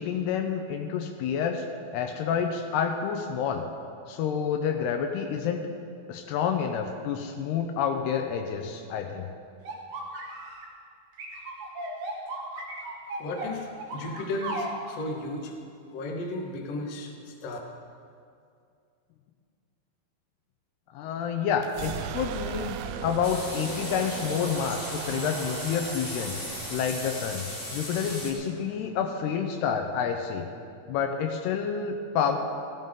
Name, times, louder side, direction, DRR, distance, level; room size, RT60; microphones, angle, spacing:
voice 1, 0.0-1.7 1.9-3.7 4.1-5.7 6.1-9.3 20.9-26.3 26.7-27.4 27.7-30.5 30.9-32.4, left 7 dB, 80° left, 5 dB, 2.7 m, -29 dB
sound 1, 9.7-10.7 11.2-14.7, right 2 dB, 70° right, 3.8 m, -36 dB
voice 2, 13.2-15.5 15.9-17.6, left 2 dB, 55° left, 1 dB, 1.8 m, -34 dB
sound 2, 21.6-29.3, right 9 dB, 85° right, 2.2 m, -38 dB
sound 3, 23.2-28.3, left 1 dB, 15° left, 2.0 m, -37 dB
16.5 x 16.0 x 3.8 m, 2.4 s
omnidirectional pair, 4.9 m